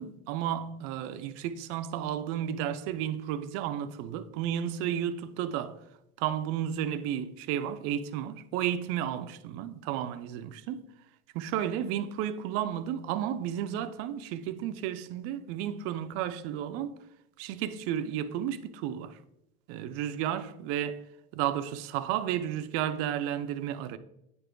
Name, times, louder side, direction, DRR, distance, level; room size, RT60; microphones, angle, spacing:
voice 1, 0.0-5.8 6.2-10.8 11.3-17.0 17.4-19.2 19.7-21.0 21.3-24.0, right 10 dB, 50° right, 0.5 m, -32 dB
9.2 x 3.4 x 3.7 m
supercardioid pair, 125°, 30 cm